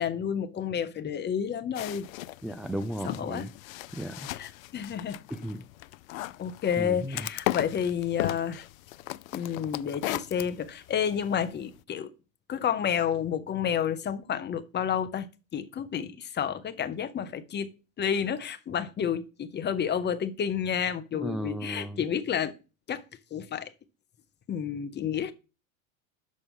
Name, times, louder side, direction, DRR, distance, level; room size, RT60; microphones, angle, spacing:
voice 1, 0.0-2.1 3.0-3.5 4.3-5.2 6.4-8.6 9.3-12.1 12.5-17.7 18.0-22.5 22.9-23.0 23.3-23.7 24.5-25.3, left 8 dB, 25° left, 1.0 m, -30 dB
sound 1, 1.7-11.8, left 17 dB, 75° left, 0.5 m, -37 dB
voice 2, 2.4-3.5 3.9-4.3 5.3-5.6 6.8-7.2 21.1-22.0, equal, ahead, 0.3 m, -35 dB
6.8 x 6.5 x 5.4 m
hypercardioid pair, 100°, 41 cm